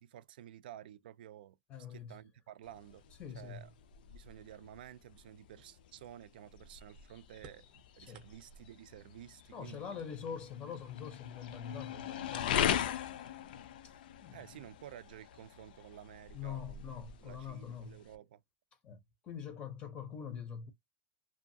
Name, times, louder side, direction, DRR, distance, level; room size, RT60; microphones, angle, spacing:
voice 1, 0.0-1.6 1.9-3.0 3.3-3.7 4.0-10.0 14.3-16.9 17.2-18.4, right 11 dB, 80° right, 0.4 m, -52 dB
voice 2, 1.7-2.2 3.2-3.7 8.0-8.2 9.5-12.9 13.8-13.9 14.2-14.4 16.3-18.0 18.8-20.7, left 7 dB, 20° left, 0.5 m, -44 dB
sound 1, 2.6-18.2, left 9 dB, 70° left, 0.4 m, -40 dB
sound 2, 7.4-8.8 9.4-10.5 11.6-11.7 12.6-12.7 13.2-13.7, right 4 dB, 20° right, 0.6 m, -60 dB
2.7 x 2.3 x 2.6 m
supercardioid pair, 170°, 5 cm